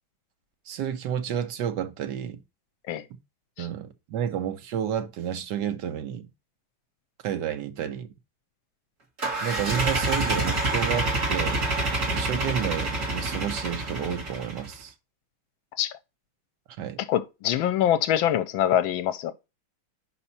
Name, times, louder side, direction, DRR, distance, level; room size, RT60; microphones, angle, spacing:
voice 1, 0.7-2.4 3.6-6.3 7.2-8.1 9.4-11.6 12.1-14.9 16.8-17.0, right 9 dB, 65° right, 1.3 m, -31 dB
sound 1, 9.2-14.7, right 2 dB, 40° right, 2.1 m, -27 dB
voice 2, 17.0-19.3, left 11 dB, 80° left, 1.4 m, -24 dB
5.4 x 4.3 x 5.5 m
omnidirectional pair, 2.2 m